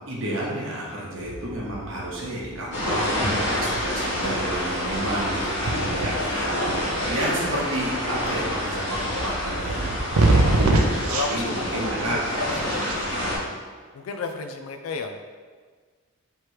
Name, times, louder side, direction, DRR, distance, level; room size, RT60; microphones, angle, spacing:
voice 1, 0.1-6.7 7.0-12.2, right 1 dB, 60° right, -4 dB, 1.0 m, -31 dB
sound 1, 1.2-13.4, right 2 dB, 75° right, 0.5 m, -28 dB
sound 2, 2.7-13.4, left 1 dB, 50° left, 1.4 m, -28 dB
voice 2, 6.0-6.4 11.1-12.2 12.5-13.3 13.9-15.2, left 4 dB, 75° left, 6 dB, 0.3 m, -33 dB
3.2 x 2.9 x 4.7 m, 1.5 s
head